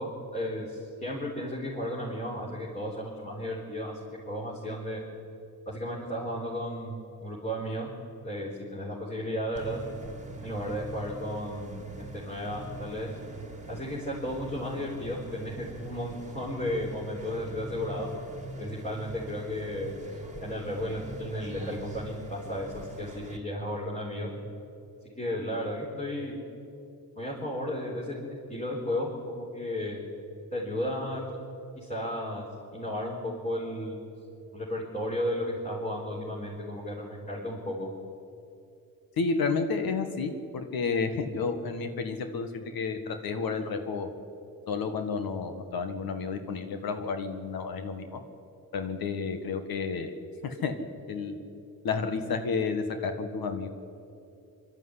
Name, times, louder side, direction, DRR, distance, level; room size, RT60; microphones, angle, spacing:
voice 1, 0.0-4.0 4.3-5.0 5.7-7.9 8.2-9.8 10.4-13.1 13.7-18.1 18.6-19.9 20.4-24.3 25.1-26.4 27.2-28.2 28.5-30.0 30.5-31.2 31.7-32.4 32.7-34.0 34.5-37.9, left 1 dB, 20° left, -5 dB, 4.2 m, -34 dB
sound 1, 9.6-23.4, right 2 dB, 20° right, 2.0 m, -43 dB
voice 2, 39.2-44.1 44.7-48.2 48.7-50.1 50.4-50.8 51.1-51.4 51.8-53.7, left 4 dB, 80° left, 7 dB, 1.6 m, -31 dB
23.5 x 12.0 x 9.8 m, 2.7 s
cardioid pair, 90°, 35 cm